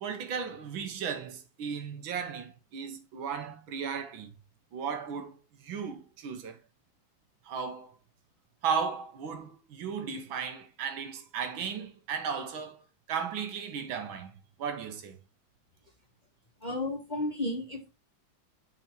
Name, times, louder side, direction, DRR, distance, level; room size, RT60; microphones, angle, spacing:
voice 1, 0.0-4.3 4.7-5.4 5.6-6.6 7.5-7.9 8.6-12.8 13.1-14.3 14.6-15.2, right 6 dB, 80° right, 1.8 m, -35 dB
voice 2, 16.6-17.9, left 2 dB, 30° left, 1.1 m, -33 dB
7.1 x 4.0 x 4.4 m
omnidirectional pair, 2.1 m